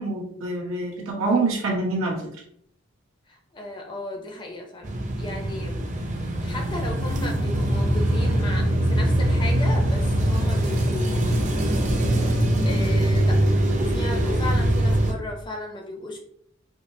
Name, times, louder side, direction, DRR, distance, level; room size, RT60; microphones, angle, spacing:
voice 1, 0.0-2.2, right 3 dB, 90° right, -3 dB, 1.2 m, -25 dB
voice 2, 3.3-5.8 6.2-11.4 12.6-13.4 13.7-16.2, left 2 dB, 20° left, 1 dB, 0.5 m, -35 dB
sound 1, 4.8-15.1, right 1 dB, 35° right, 0.5 m, -22 dB
5.0 x 2.0 x 2.6 m, 0.70 s
head